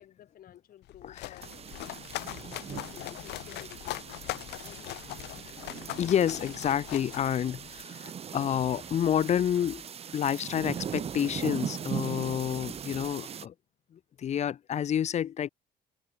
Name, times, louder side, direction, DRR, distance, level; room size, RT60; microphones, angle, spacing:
voice 1, 0.0-5.2, left 11 dB, 60° left, 2.2 m, -54 dB
sound 1, 0.8-7.8, left 17 dB, 80° left, 2.2 m, -41 dB
sound 2, 1.4-13.5, right 8 dB, 35° right, 0.9 m, -40 dB
voice 2, 5.7-9.8 10.1-13.5 13.9-15.5, left 9 dB, 40° left, 0.6 m, -29 dB
sound 3, 8.3-13.4, right 1 dB, 5° right, 5.5 m, -56 dB
open air
cardioid pair, 110°, 17 cm